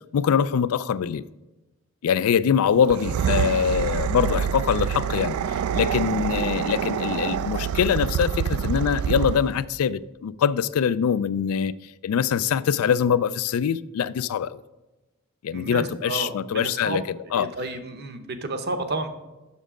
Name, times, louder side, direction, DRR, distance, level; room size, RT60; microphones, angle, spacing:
voice 1, 0.1-1.2 2.0-11.7 12.0-14.6 15.4-17.0 17.3-17.5, left 7 dB, 80° left, 0.3 m, -23 dB
sound 1, 2.8-9.6, right 8 dB, 80° right, 0.3 m, -26 dB
voice 2, 15.5-17.0 17.3-19.1, right 2 dB, 50° right, 0.8 m, -31 dB
7.2 x 6.4 x 5.0 m
head